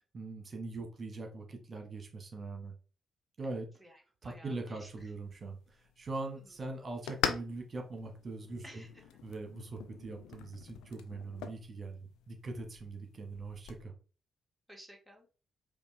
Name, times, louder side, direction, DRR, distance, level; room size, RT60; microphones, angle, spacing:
voice 1, 0.1-2.7 3.4-3.7 4.2-8.8 9.2-13.9, right 3 dB, 40° right, 3 dB, 1.2 m, -42 dB
voice 2, 3.5-5.1 6.2-6.6 8.6-8.9 14.7-15.3, right 1 dB, ahead, 0 dB, 1.6 m, -55 dB
sound 1, 4.9-13.8, left 9 dB, 70° left, 0.4 m, -43 dB
5.1 x 2.5 x 3.2 m, 0.36 s
hypercardioid pair, 40°, 0 cm